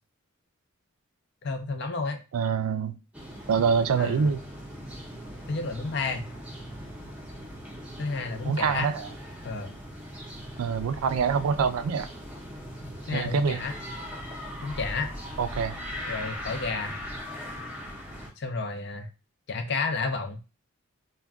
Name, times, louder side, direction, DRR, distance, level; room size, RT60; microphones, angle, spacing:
voice 1, 1.4-2.2 4.0-4.4 5.5-6.3 8.0-8.9 9.4-9.8 13.1-13.7 14.6-15.1 16.1-17.0 18.4-19.1 19.5-20.4, left 4 dB, 55° left, 0.4 m, -31 dB
voice 2, 2.3-2.9 3.5-4.4 8.5-9.1 10.6-12.1 13.1-13.6 15.4-15.8, right 6 dB, 85° right, 0.3 m, -25 dB
sound 1, 3.1-18.3, equal, 5° right, 0.5 m, -40 dB
2.2 x 2.2 x 3.5 m
head